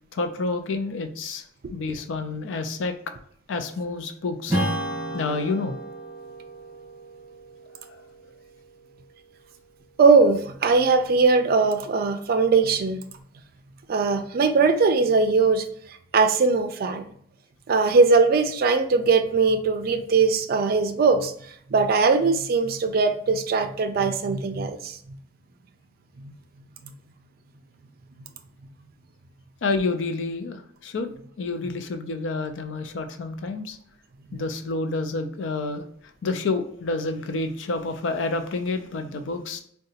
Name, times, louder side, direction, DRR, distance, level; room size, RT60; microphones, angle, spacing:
voice 1, 0.1-1.4 1.7-2.9 3.5-4.6 5.1-5.8 7.8-7.9 29.6-31.1 31.4-33.8 34.3-35.8 36.2-39.6, left 3 dB, 85° left, 8 dB, 0.4 m, -29 dB
Strum, 4.5-9.4, right 1 dB, 10° right, 1.3 m, -32 dB
voice 2, 10.0-13.0 13.9-15.6 16.1-17.0 17.7-21.3 21.7-25.0, right 4 dB, 55° right, 8 dB, 0.4 m, -20 dB
3.7 x 2.2 x 2.7 m, 0.63 s
head